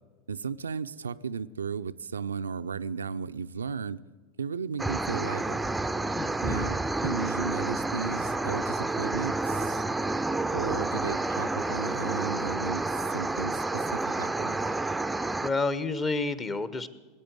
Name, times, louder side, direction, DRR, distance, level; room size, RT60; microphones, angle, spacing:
voice 1, 0.3-4.0 4.4-5.6 6.4-9.8 10.5-14.6, right 6 dB, 80° right, 0.4 m, -35 dB
sound 1, 4.8-15.5, right 2 dB, 5° right, 0.5 m, -30 dB
voice 2, 15.4-16.9, left 3 dB, 25° left, 0.9 m, -29 dB
19.0 x 8.6 x 7.8 m
figure-of-eight pair, 85°, 0 cm